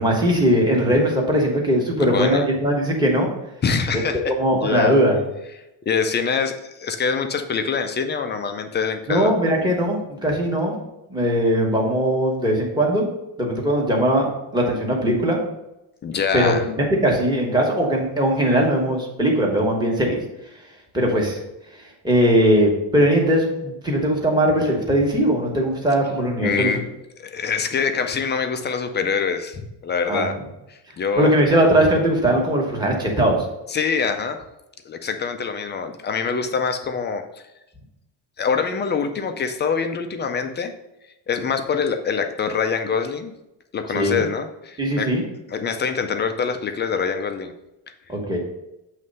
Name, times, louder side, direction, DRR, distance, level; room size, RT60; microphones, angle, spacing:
voice 1, 0.0-3.3 4.3-5.2 9.1-10.8 11.1-13.0 13.4-14.3 14.5-15.4 16.3-20.2 20.9-21.4 22.0-26.8 30.1-30.3 31.2-33.4 43.9-44.2 44.8-45.2 48.1-48.4, right 1 dB, 10° right, -2 dB, 1.2 m, -20 dB
voice 2, 2.0-2.5 3.6-5.0 5.9-6.5 6.8-9.7 16.0-16.6 26.4-26.8 27.2-30.3 30.7-31.3 33.7-34.4 34.9-37.2 38.4-40.7 41.3-43.3 43.7-45.1 45.5-47.5, left 6 dB, 25° left, 7 dB, 0.3 m, -24 dB
7.6 x 3.2 x 5.2 m, 0.91 s
cardioid pair, 155°, 50 cm